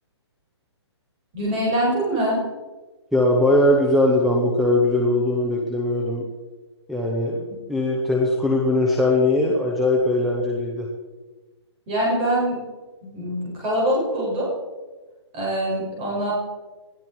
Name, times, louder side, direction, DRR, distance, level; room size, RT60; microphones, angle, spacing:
voice 1, 1.3-2.4 11.9-12.6 13.0-14.5 15.3-16.3, right 1 dB, 15° right, -4 dB, 6.6 m, -23 dB
voice 2, 3.1-6.2 6.9-7.4 7.7-10.9, left 1 dB, ahead, -1 dB, 0.8 m, -20 dB
20.0 x 13.5 x 4.6 m, 1.2 s
hypercardioid pair, 180°, 15 cm